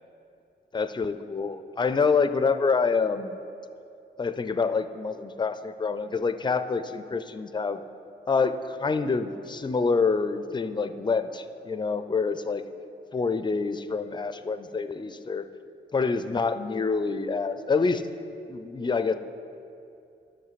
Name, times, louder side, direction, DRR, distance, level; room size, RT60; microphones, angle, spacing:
voice 1, 0.7-3.4 4.2-7.8 8.3-12.6 13.1-15.4 15.9-18.1 18.5-19.1, left 4 dB, 25° left, 11 dB, 0.4 m, -26 dB
11.0 x 6.0 x 4.1 m, 2.6 s
cardioid pair, 65°, 20 cm